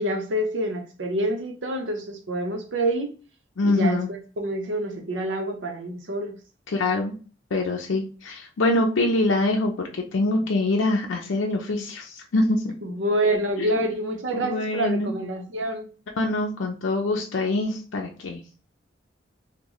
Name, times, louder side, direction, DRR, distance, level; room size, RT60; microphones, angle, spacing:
voice 1, 0.0-3.1 3.6-6.4 12.8-15.9, right 1 dB, 80° right, 0.7 m, -27 dB
voice 2, 3.6-4.1 6.7-7.1 7.5-12.7 14.3-15.1 16.2-18.4, left 2 dB, 85° left, 0.5 m, -24 dB
3.1 x 2.2 x 3.8 m
head